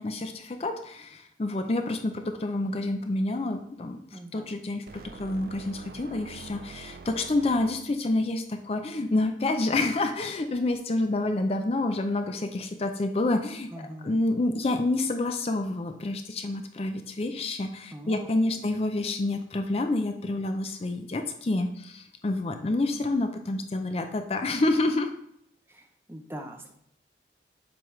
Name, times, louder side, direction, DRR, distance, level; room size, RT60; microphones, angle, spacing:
voice 1, 0.0-25.1, left 2 dB, 35° left, 7 dB, 0.4 m, -28 dB
voice 2, 4.1-4.6 13.7-14.2 17.9-18.6 25.7-26.7, right 1 dB, 15° right, 4 dB, 0.6 m, -42 dB
sound 1, 4.9-8.1, right 5 dB, 55° right, 0.4 m, -45 dB
7.7 x 5.2 x 3.1 m, 0.73 s
head